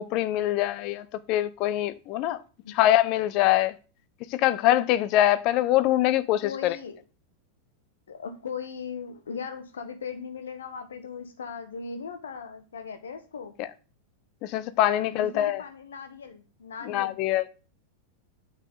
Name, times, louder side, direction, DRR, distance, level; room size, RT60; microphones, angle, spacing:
voice 1, 0.0-2.4 2.7-3.7 4.3-6.7 13.6-13.7 14.4-15.6 16.9-17.5, left 13 dB, 40° left, 0.7 m, -24 dB
voice 2, 6.4-7.0 8.1-13.5 15.1-17.2, left 6 dB, 65° left, 1.5 m, -38 dB
9.0 x 6.5 x 4.0 m
figure-of-eight pair, 90°, 0 cm